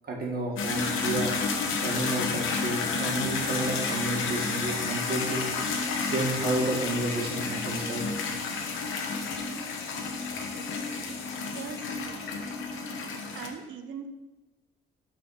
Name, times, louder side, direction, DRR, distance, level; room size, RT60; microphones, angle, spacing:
voice 1, 0.0-1.3 1.8-5.5 6.1-8.0, right 2 dB, 50° right, -1 dB, 1.8 m, -31 dB
sound 1, 0.6-13.5, left 4 dB, 85° left, 1.0 m, -31 dB
voice 2, 11.3-12.0 13.3-14.1, right 7 dB, 70° right, 8 dB, 0.7 m, -40 dB
5.8 x 4.2 x 5.6 m, 1.1 s
cardioid pair, 90°, 20 cm